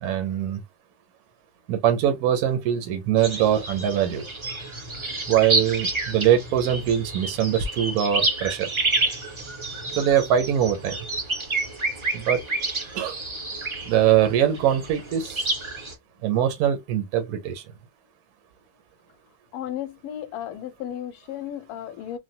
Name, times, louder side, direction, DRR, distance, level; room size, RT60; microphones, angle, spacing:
voice 1, 0.0-0.6 1.7-4.2 5.3-8.7 10.0-11.0 12.1-12.4 12.9-13.2 13.9-15.5 16.2-17.6, right 10 dB, 70° right, 1.1 m, -22 dB
sound 1, 3.2-15.9, right 2 dB, 35° right, 0.4 m, -29 dB
voice 2, 19.5-22.2, left 10 dB, 75° left, 1.0 m, -34 dB
3.2 x 2.2 x 2.7 m
omnidirectional pair, 1.7 m